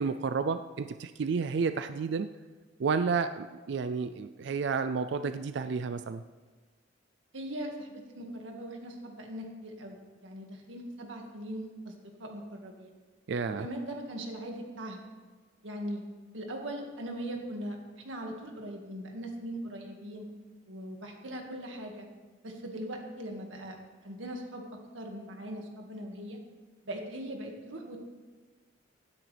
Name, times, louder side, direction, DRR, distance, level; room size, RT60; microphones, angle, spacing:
voice 1, 0.0-2.3 2.8-6.2 13.3-13.7, right 5 dB, 65° right, 11 dB, 0.4 m, -31 dB
voice 2, 7.3-12.9 13.6-15.0 15.6-16.0 16.3-20.3 20.7-22.1 22.4-23.8 24.0-24.7 24.9-26.4 26.8-28.0, right 1 dB, 85° right, 2 dB, 1.9 m, -40 dB
16.5 x 9.8 x 3.4 m, 1.3 s
head